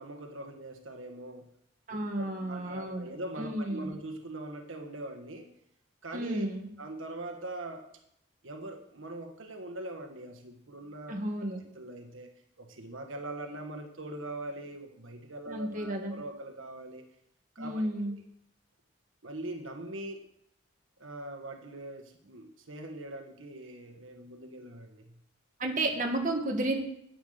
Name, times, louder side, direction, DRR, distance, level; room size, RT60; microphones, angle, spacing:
voice 1, 0.0-1.5 2.1-5.5 6.0-6.5 6.8-7.9 8.4-11.2 11.7-12.3 12.6-17.0 17.5-17.9 19.2-20.3 21.0-25.2, right 1 dB, 80° right, 4 dB, 1.4 m, -42 dB
voice 2, 1.9-3.1 3.4-4.0 6.1-6.7 11.1-11.6 15.5-16.2 17.6-18.2 25.6-26.8, right 1 dB, 40° right, 1 dB, 1.8 m, -32 dB
10.5 x 9.3 x 6.5 m, 0.74 s
head